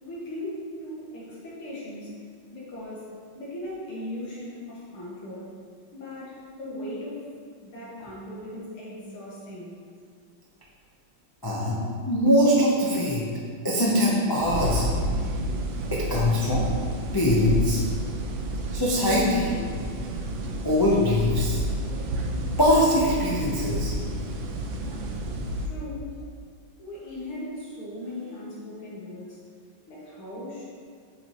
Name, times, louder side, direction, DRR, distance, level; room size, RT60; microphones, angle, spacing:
voice 1, 0.0-2.2 2.5-5.5 5.9-7.3 7.6-9.8 25.6-26.2 26.8-29.4 29.9-30.6, left 1 dB, 90° left, -6 dB, 2.9 m, -38 dB
voice 2, 11.4-11.8 12.1-13.2 13.6-14.9 15.9-16.7 17.1-17.8 18.7-19.5 20.6-21.6 22.6-23.9, left 1 dB, 25° left, -5 dB, 0.5 m, -22 dB
sound 1, 14.4-25.7, right 1 dB, 70° right, 1.5 m, -30 dB
8.9 x 7.8 x 3.1 m, 2.1 s
omnidirectional pair, 2.3 m